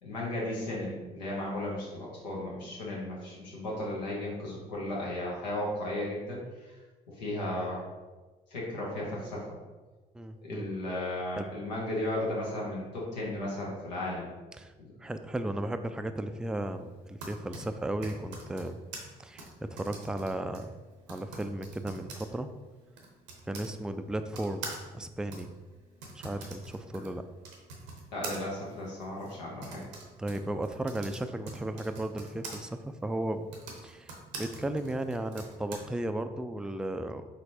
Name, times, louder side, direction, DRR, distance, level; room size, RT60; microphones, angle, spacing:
voice 1, 0.0-6.8 7.2-7.8 8.5-9.6 10.4-14.3 14.8-14.9 28.1-29.8, left 1 dB, 85° left, -4 dB, 1.0 m, -35 dB
voice 2, 10.1-10.7 11.4-11.5 14.6-14.7 15.0-18.8 19.2-20.7 21.1-22.5 23.5-24.7 24.9-25.5 26.1-27.2 30.2-33.5 33.8-37.3, right 1 dB, 5° right, 8 dB, 0.3 m, -35 dB
Typing, 16.9-23.7 24.3-32.6 33.4-35.8, right 3 dB, 80° right, 0.7 m, -45 dB
4.3 x 3.9 x 2.7 m, 1.2 s
hypercardioid pair, 45°, 21 cm